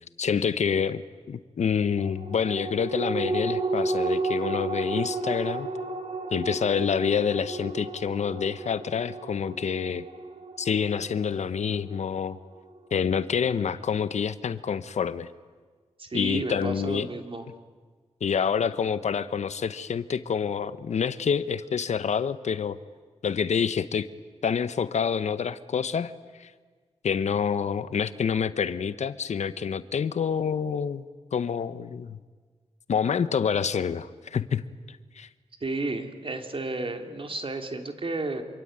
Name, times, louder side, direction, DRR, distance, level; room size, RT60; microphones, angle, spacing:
voice 1, 0.2-5.7 6.3-10.1 10.6-12.4 12.9-15.3 16.1-17.1 18.2-22.8 23.2-24.1 24.4-26.1 26.4-26.5 27.0-31.0 31.3-32.2 32.9-35.3, left 7 dB, 85° left, 14 dB, 0.9 m, -27 dB
sound 1, 2.0-12.8 13.2-13.3, right 3 dB, 70° right, 3.1 m, -32 dB
voice 2, 16.0-17.5 35.6-38.4, right 2 dB, 50° right, 5 dB, 3.1 m, -32 dB
27.0 x 24.0 x 8.9 m, 1.5 s
cardioid pair, 60°, 12 cm